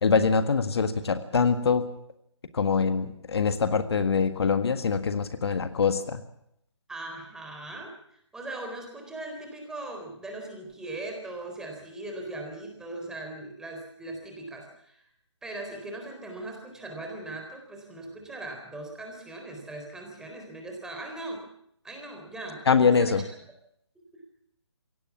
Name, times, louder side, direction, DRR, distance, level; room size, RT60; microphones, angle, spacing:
voice 1, 0.0-1.8 2.5-6.2 22.7-23.2, left 5 dB, 60° left, 9 dB, 1.7 m, -24 dB
voice 2, 6.9-15.1 15.4-21.4 21.8-23.2 24.1-24.2, right 2 dB, 5° right, 2 dB, 4.0 m, -39 dB
23.0 x 17.5 x 7.2 m, 0.73 s
figure-of-eight pair, 155°, 15 cm